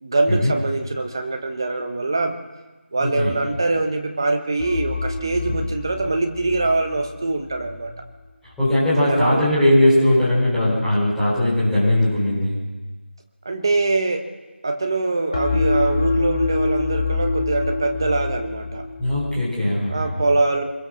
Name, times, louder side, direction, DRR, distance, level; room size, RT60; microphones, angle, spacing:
voice 1, 0.0-2.4 2.9-7.9 9.0-9.7 13.4-14.3 14.6-18.9 19.9-20.6, right 3 dB, 20° right, 5 dB, 1.2 m, -23 dB
voice 2, 3.0-3.3 8.4-12.6 19.0-20.1, left 1 dB, ahead, -12 dB, 4.0 m, -19 dB
sound 1, 4.6-7.7 15.3-19.3, left 3 dB, 30° left, 3.0 m, -25 dB
25.0 x 21.5 x 6.4 m, 1.2 s
figure-of-eight pair, 180°, 7 cm